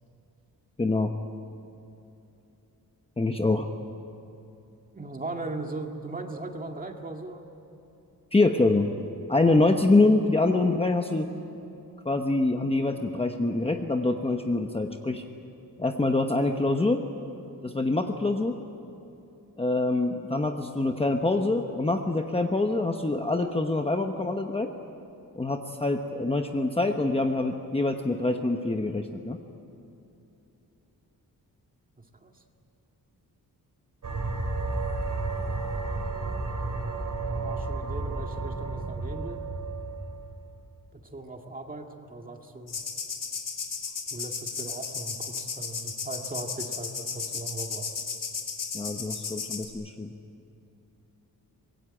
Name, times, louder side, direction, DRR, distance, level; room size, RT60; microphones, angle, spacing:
voice 1, 0.8-1.1 3.2-3.7 8.3-8.9 9.3-11.3 12.0-15.2 15.8-17.0 17.6-18.5 19.6-24.7 25.4-29.4 48.7-50.1, left 2 dB, 15° left, 4 dB, 1.0 m, -25 dB
voice 2, 4.9-7.5 32.2-32.3 37.3-39.4 41.1-42.8 44.1-47.9, right 2 dB, 25° right, 3 dB, 2.1 m, -38 dB
sound 1, 34.0-40.6, right 3 dB, 60° right, 4.2 m, -32 dB
sound 2, 42.7-49.7, left 5 dB, 65° left, 3.1 m, -35 dB
25.0 x 22.0 x 8.9 m, 2.8 s
wide cardioid pair, 180°, 36 cm